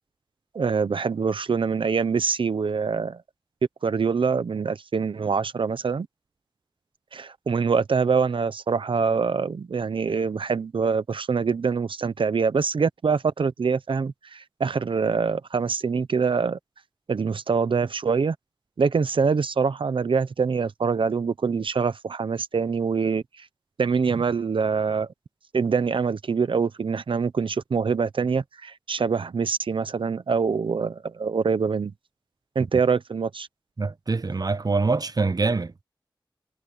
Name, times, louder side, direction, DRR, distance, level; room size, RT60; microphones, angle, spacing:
voice 1, 0.5-3.2 3.8-6.1 7.1-16.6 17.1-18.4 18.8-23.5 23.8-25.1 25.5-31.9 32.5-33.5, right 5 dB, 90° right, 0.8 m, -24 dB
voice 2, 33.8-35.8, right 3 dB, 50° right, 0.8 m, -24 dB
wide cardioid pair, 50°, 9 cm